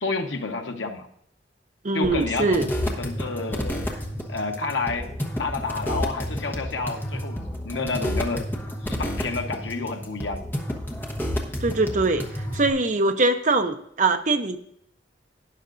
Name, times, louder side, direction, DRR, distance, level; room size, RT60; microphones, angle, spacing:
voice 1, 0.0-1.1 1.9-3.9 4.3-5.1 5.4-8.4 8.8-10.4, left 3 dB, 80° left, 5 dB, 1.1 m, -30 dB
voice 2, 1.8-2.7 11.6-14.6, right 3 dB, 40° right, 7 dB, 0.7 m, -22 dB
sound 1, 2.0-12.7, equal, 10° left, 1.1 m, -30 dB
12.5 x 10.0 x 2.6 m, 0.71 s
head